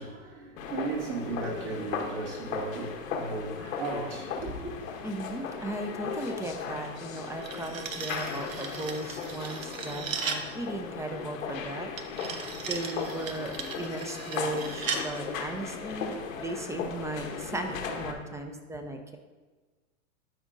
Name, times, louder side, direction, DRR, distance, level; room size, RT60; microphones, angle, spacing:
voice 1, 0.0-4.7, right 3 dB, 50° right, 2.1 m, -36 dB
sound 1, 0.6-18.1, left 6 dB, 80° left, 1.1 m, -37 dB
voice 2, 5.0-11.9 12.7-19.2, right 2 dB, 5° right, 0.5 m, -36 dB
sound 2, 7.2-10.5 12.0-15.1, right 5 dB, 90° right, 0.8 m, -37 dB
12.0 x 5.1 x 2.6 m
hypercardioid pair, 105°, 40 cm